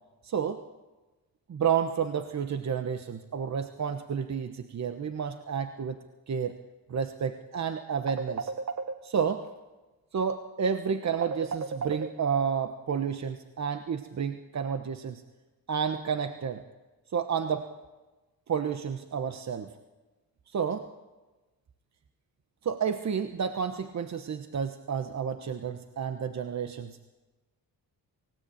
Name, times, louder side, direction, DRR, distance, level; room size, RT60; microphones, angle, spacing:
voice 1, 0.2-0.6 1.5-6.0 6.3-6.5 6.9-9.4 10.1-15.2 15.7-16.6 17.1-17.7 18.5-19.7 20.5-20.8 22.6-27.0, right 7 dB, 50° right, 8 dB, 1.2 m, -30 dB
29.0 x 16.5 x 8.6 m, 1.2 s
cardioid pair, 115°, 36 cm